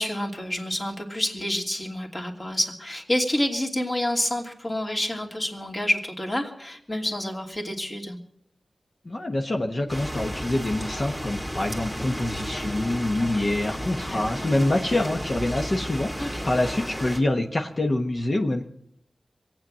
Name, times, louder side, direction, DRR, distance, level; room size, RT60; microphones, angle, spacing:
voice 1, 0.0-8.2 12.0-12.2 14.1-14.5 16.2-16.5, left 1 dB, 35° left, 1 dB, 2.7 m, -28 dB
voice 2, 9.0-18.7, left 1 dB, 50° left, 2 dB, 1.3 m, -26 dB
sound 1, 9.9-17.2, equal, 10° left, 2.2 m, -33 dB
23.0 x 9.0 x 6.3 m, 0.71 s
cardioid pair, 45°, 0 cm